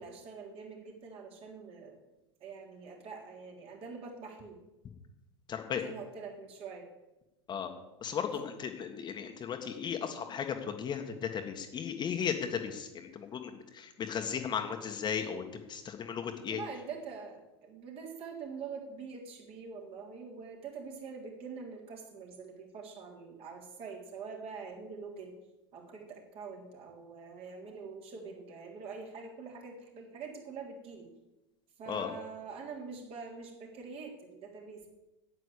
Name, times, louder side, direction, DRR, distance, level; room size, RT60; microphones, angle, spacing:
voice 1, 0.0-2.0 2.4-4.6 5.8-6.9 16.5-25.4 25.7-31.1 31.8-34.9, right 5 dB, 40° right, 0 dB, 3.6 m, -45 dB
voice 2, 5.5-5.8 7.5-7.7 8.0-16.6 31.9-32.1, left 7 dB, 30° left, 5 dB, 1.7 m, -36 dB
9.7 x 9.0 x 8.5 m, 0.99 s
figure-of-eight pair, 85°, 15 cm